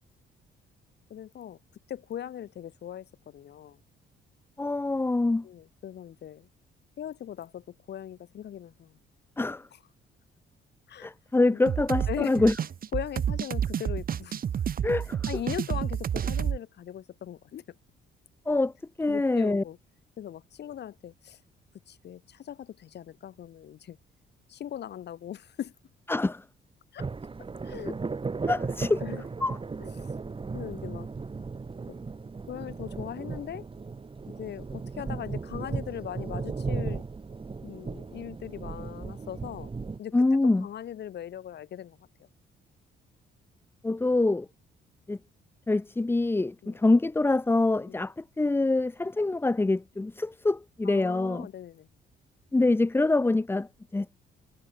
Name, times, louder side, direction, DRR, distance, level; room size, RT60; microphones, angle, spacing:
voice 1, 1.1-1.6 1.9-3.8 5.4-6.5 7.0-8.9 10.9-11.1 11.5-11.6 12.1-12.4 12.9-14.4 15.3-17.6 19.1-19.8 20.2-21.4 21.9-24.0 24.5-25.7 26.9-27.1 27.6-28.0 29.0-29.2 29.8-30.1 30.5-31.1 32.5-33.6 34.4-37.0 37.6-39.7 40.0-40.2 40.6-42.0 46.6-46.8 47.9-48.0 50.8-51.9, left 10 dB, 60° left, 1.0 m, -39 dB
voice 2, 4.6-5.5 9.4-9.6 11.0-12.5 14.8-15.2 18.5-18.7 19.0-19.6 26.1-26.4 28.5-29.0 29.4-29.6 40.1-40.7 43.8-44.5 45.1-45.2 45.7-51.5 52.5-53.7 53.9-54.1, left 2 dB, 10° left, 0.6 m, -25 dB
sound 1, 11.7-16.6, right 8 dB, 45° right, 0.9 m, -30 dB
sound 2, 27.0-40.0, right 4 dB, 25° right, 1.8 m, -36 dB
cardioid pair, 90°, 20 cm